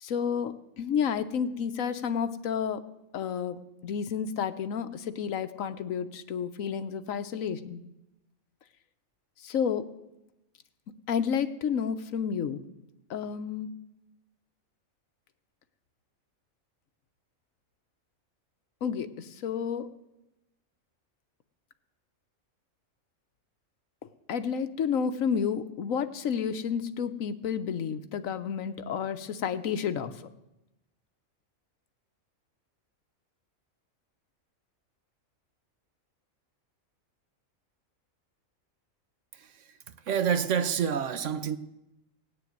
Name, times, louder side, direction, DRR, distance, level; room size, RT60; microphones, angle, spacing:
voice 1, 0.0-2.8 3.1-7.8 9.4-9.9 11.1-12.6 13.1-13.7 18.8-19.9 24.3-30.1, left 7 dB, 75° left, 1.2 m, -31 dB
voice 2, 39.3-39.7 40.1-41.6, right 7 dB, 65° right, 1.1 m, -28 dB
17.5 x 6.7 x 9.3 m
omnidirectional pair, 1.4 m